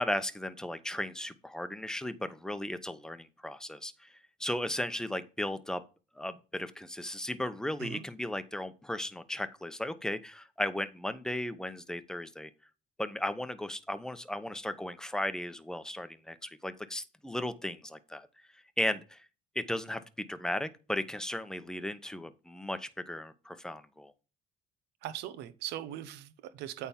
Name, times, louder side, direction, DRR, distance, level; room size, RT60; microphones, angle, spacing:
voice 1, 0.0-4.1 4.4-5.8 6.2-12.5 13.0-18.3 18.8-19.3 19.5-24.1, left 1 dB, 5° left, 0.8 m, -36 dB
voice 2, 25.0-26.9, right 12 dB, 90° right, 0.9 m, -40 dB
8.7 x 3.5 x 5.6 m
cardioid pair, 110°, 17 cm